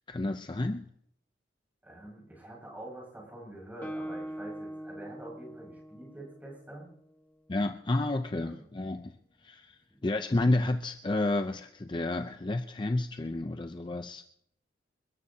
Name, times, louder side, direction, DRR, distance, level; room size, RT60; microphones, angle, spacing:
voice 1, 0.1-0.9 7.5-9.1 9.4-14.2, left 2 dB, 25° left, 7 dB, 0.5 m, -30 dB
voice 2, 1.8-6.9 8.4-8.6 9.9-10.0, right 1 dB, 10° right, -3 dB, 5.7 m, -46 dB
Guitar, 3.8-7.5, right 1 dB, 10° left, 1.3 m, -42 dB
28.5 x 13.5 x 2.8 m, 0.70 s
head